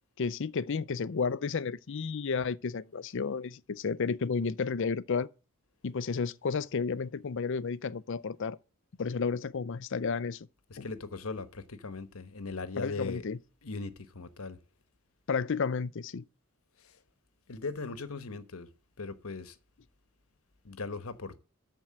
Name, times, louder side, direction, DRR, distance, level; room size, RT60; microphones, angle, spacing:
voice 1, 0.2-5.3 5.8-8.6 9.0-10.5 10.8-10.9 12.8-13.4 15.3-16.2, left 5 dB, 60° left, 0.5 m, -32 dB
voice 2, 10.7-13.3 13.6-14.6 16.8-17.0 17.5-18.7 19.0-19.6 20.6-21.4, left 3 dB, 75° left, 1.1 m, -39 dB
13.0 x 4.5 x 7.6 m
head